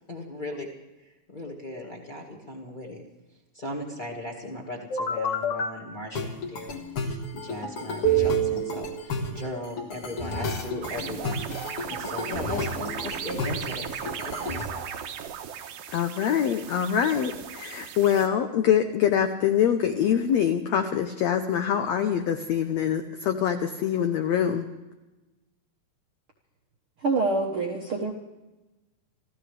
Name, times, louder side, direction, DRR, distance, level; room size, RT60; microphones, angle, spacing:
voice 1, 0.1-0.7 1.0-3.0 3.5-14.9, left 1 dB, 25° left, -2 dB, 1.0 m, -38 dB
sound 1, 4.9-5.7 6.2-14.6, right 2 dB, 50° left, 2.0 m, -30 dB
sound 2, 10.8-18.3, right 8 dB, 85° right, 2.8 m, -36 dB
voice 2, 15.9-24.7, left 9 dB, 85° left, 6 dB, 1.5 m, -24 dB
voice 3, 27.0-28.1, right 3 dB, 60° right, 0 dB, 1.4 m, -26 dB
27.0 x 15.0 x 3.4 m, 1.1 s
omnidirectional pair, 4.1 m